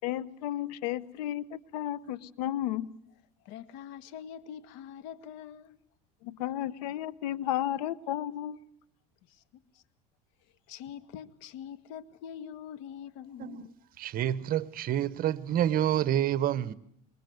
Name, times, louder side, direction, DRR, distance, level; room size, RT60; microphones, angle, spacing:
voice 1, 0.0-2.9 6.2-8.6, left 12 dB, 90° left, 1.3 m, -33 dB
voice 2, 3.4-5.8 9.3-9.8 10.7-13.7, left 9 dB, 70° left, 2.0 m, -44 dB
voice 3, 14.0-16.7, right 11 dB, 45° right, 1.2 m, -28 dB
26.5 x 23.0 x 8.0 m
supercardioid pair, 115°, 20 cm